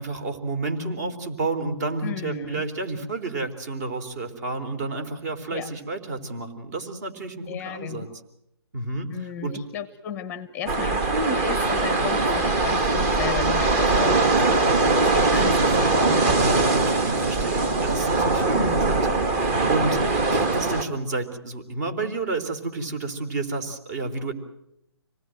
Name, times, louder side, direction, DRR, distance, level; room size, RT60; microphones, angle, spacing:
voice 1, 0.0-8.1 8.7-9.6 16.4-24.3, right 3 dB, 40° right, 8 dB, 3.7 m, -31 dB
voice 2, 2.0-2.6 5.5-5.7 7.5-8.1 9.1-16.4 18.5-18.9, left 6 dB, 15° left, 13 dB, 0.9 m, -34 dB
sound 1, 10.7-20.8, right 3 dB, 25° right, 1.7 m, -21 dB
26.0 x 19.0 x 7.7 m, 0.79 s
figure-of-eight pair, 150°, 14 cm